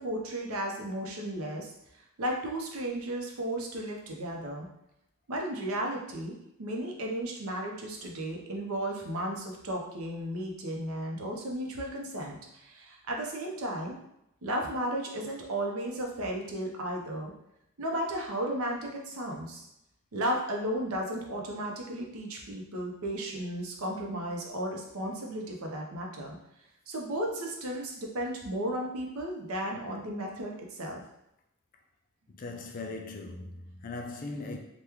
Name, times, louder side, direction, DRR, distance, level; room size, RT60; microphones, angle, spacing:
voice 1, 0.0-1.7 2.2-4.7 5.3-6.3 6.6-14.0 14.4-17.3 17.8-19.7 20.1-26.4 26.9-31.0, right 1 dB, 90° right, 0 dB, 0.6 m, -34 dB
voice 2, 32.3-34.6, left 3 dB, 40° left, 3 dB, 0.4 m, -39 dB
2.9 x 2.2 x 3.5 m, 0.82 s
head